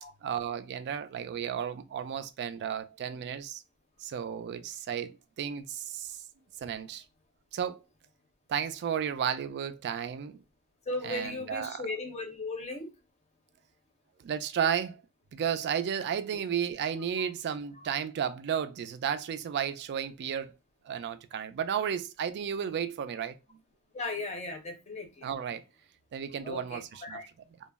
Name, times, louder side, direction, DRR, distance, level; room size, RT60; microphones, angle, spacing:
voice 1, 0.2-3.6 4.0-6.2 6.6-7.0 7.5-7.8 8.5-10.4 11.0-11.8 14.2-15.0 15.3-20.6 20.9-23.4 25.2-25.6 26.1-27.2, right 8 dB, 50° right, 0.3 m, -33 dB
voice 2, 10.9-12.9 17.2-17.3 17.8-17.9 23.9-25.3 26.4-27.3, left 2 dB, 30° left, 0.6 m, -37 dB
2.2 x 2.0 x 3.3 m
head